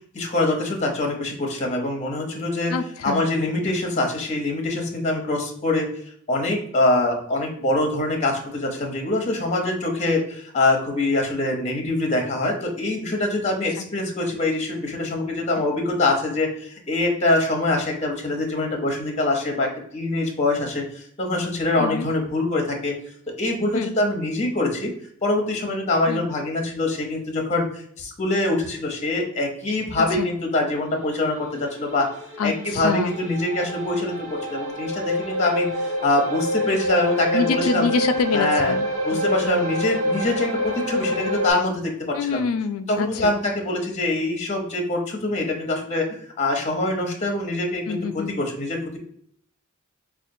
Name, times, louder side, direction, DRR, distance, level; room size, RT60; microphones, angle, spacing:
voice 1, 0.1-2.7 3.0-5.9 6.3-22.9 23.4-24.9 25.2-32.1 32.4-37.9 38.3-38.7 39.0-42.4 42.9-46.1 46.4-49.0, left 2 dB, 35° left, 2 dB, 0.8 m, -24 dB
voice 2, 2.7-3.2 3.6-3.7 21.8-22.1 23.7-23.9 26.1-26.3 30.0-30.3 32.4-33.1 37.3-38.9 39.1-39.6 42.1-43.3 47.9-48.3, left 5 dB, 75° left, 8 dB, 0.3 m, -26 dB
sound 1, 31.1-41.5, left 1 dB, 30° right, 1.1 m, -27 dB
5.0 x 2.4 x 2.6 m, 0.65 s
head